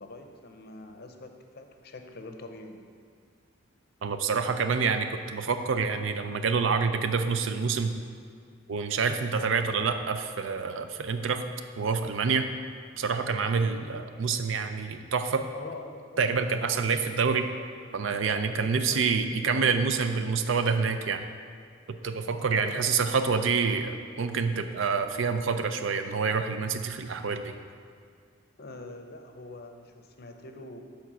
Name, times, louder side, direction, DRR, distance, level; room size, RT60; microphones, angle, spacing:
voice 1, 0.0-2.8 15.5-16.8 18.4-19.2 19.5-19.9 22.5-23.2 28.6-30.8, left 2 dB, 50° left, 5 dB, 0.6 m, -44 dB
voice 2, 4.0-7.9 8.7-11.4 11.8-12.5 13.0-15.5 16.2-17.5 17.9-21.2 21.9-27.5, right 5 dB, 70° right, 8 dB, 0.5 m, -27 dB
7.1 x 4.6 x 6.1 m, 2.2 s
head